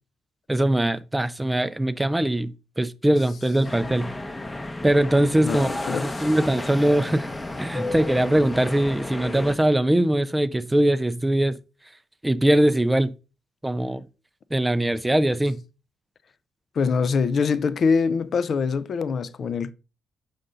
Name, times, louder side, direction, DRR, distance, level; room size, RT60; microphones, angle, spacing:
voice 1, 0.5-4.1 4.8-5.7 6.2-7.3 7.6-11.6 12.2-13.1 13.6-14.0 14.5-15.6, right 1 dB, 10° right, 0.5 m, -21 dB
sound 1, 3.6-9.5, left 2 dB, 15° left, 0.8 m, -32 dB
voice 2, 5.4-6.3 16.8-19.7, left 5 dB, 50° left, 0.5 m, -24 dB
6.6 x 5.3 x 3.7 m
cardioid pair, 90°, 0 cm